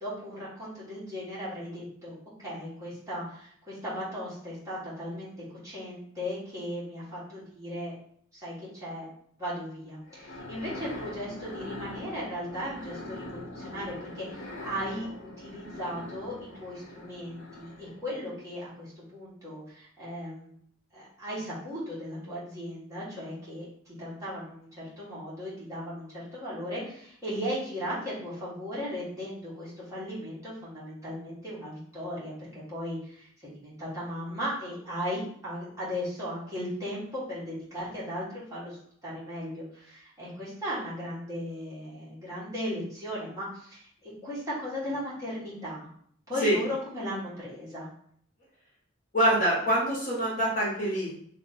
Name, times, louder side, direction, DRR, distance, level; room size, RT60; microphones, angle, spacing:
voice 1, 0.0-5.3 5.6-7.9 8.3-9.1 9.4-20.5 20.9-38.8 39.0-45.9 46.3-47.9, equal, 15° right, -9 dB, 1.3 m, -37 dB
sound 1, 10.1-18.1, left 2 dB, 60° left, 0.6 m, -42 dB
voice 2, 49.1-51.1, right 1 dB, 40° left, -5 dB, 1.2 m, -25 dB
3.2 x 2.5 x 4.1 m, 0.63 s
head